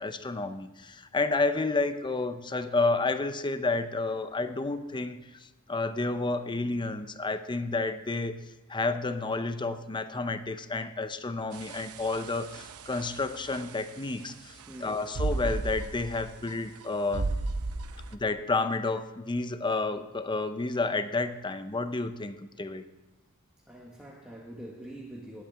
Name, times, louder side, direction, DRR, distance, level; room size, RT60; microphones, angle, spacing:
voice 1, 0.0-8.4 8.7-17.3 18.1-22.8, left 3 dB, 20° left, 10 dB, 0.6 m, -30 dB
sound 1, 11.5-18.1, right 3 dB, 85° right, 0.8 m, -35 dB
voice 2, 14.7-15.0 17.7-17.9 23.7-25.4, right 1 dB, 5° right, -3 dB, 1.4 m, -45 dB
19.5 x 8.3 x 3.4 m, 1.2 s
head